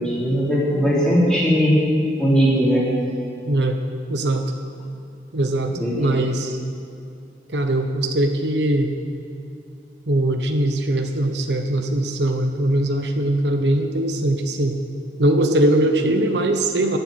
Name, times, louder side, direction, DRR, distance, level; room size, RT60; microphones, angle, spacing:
voice 1, 0.0-1.8 2.2-2.9 5.7-6.2 15.9-16.1, equal, 5° left, -7 dB, 3.9 m, -19 dB
voice 2, 3.5-3.8 4.1-4.4 5.3-6.6 7.5-8.9 10.1-14.8 15.2-17.0, right 1 dB, 80° right, 5 dB, 1.1 m, -21 dB
14.0 x 8.1 x 9.2 m, 2.5 s
head